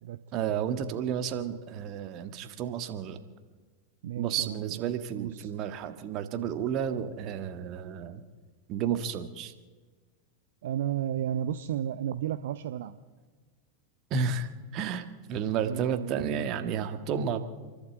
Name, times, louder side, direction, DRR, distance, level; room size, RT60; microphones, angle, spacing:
voice 1, 0.3-3.2 4.2-8.2 8.7-9.5 14.1-17.4, right 7 dB, 35° right, 8 dB, 1.6 m, -32 dB
voice 2, 4.0-4.9 5.1-5.5 10.6-13.0 15.6-16.6, right 10 dB, 55° right, 11 dB, 0.7 m, -33 dB
28.0 x 12.0 x 7.9 m, 1.4 s
figure-of-eight pair, 90°, 0 cm